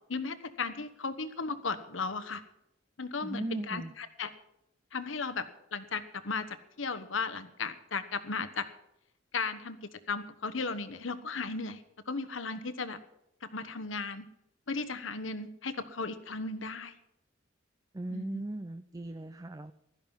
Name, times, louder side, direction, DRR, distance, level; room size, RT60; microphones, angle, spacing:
voice 1, 0.1-2.4 3.0-4.3 4.9-5.5 5.7-8.7 9.3-13.0 13.4-14.3 14.7-17.0 18.1-18.4, left 4 dB, 90° left, 12 dB, 1.2 m, -36 dB
voice 2, 3.2-3.9 17.9-19.7, right 1 dB, 20° right, 11 dB, 0.5 m, -38 dB
16.0 x 12.5 x 5.7 m, 0.85 s
head